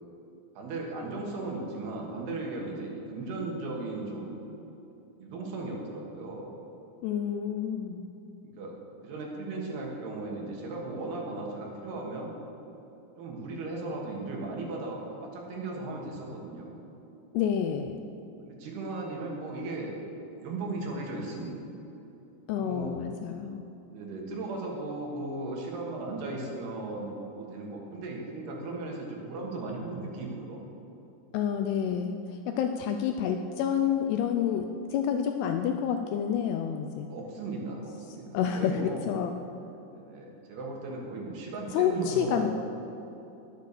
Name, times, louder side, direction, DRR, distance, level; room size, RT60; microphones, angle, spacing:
voice 1, 0.5-4.5 5.2-6.5 8.4-8.8 9.0-12.3 13.2-16.7 18.4-20.0 20.4-21.6 22.6-23.0 23.9-30.6 37.1-38.3 38.5-39.1 39.9-42.5, right 2 dB, 70° right, -1 dB, 3.3 m, -36 dB
voice 2, 7.0-8.1 17.3-18.1 22.5-23.6 31.3-37.1 38.3-39.3 41.7-42.5, left 8 dB, 85° left, 6 dB, 2.4 m, -29 dB
11.5 x 8.2 x 6.7 m, 2.9 s
omnidirectional pair, 5.1 m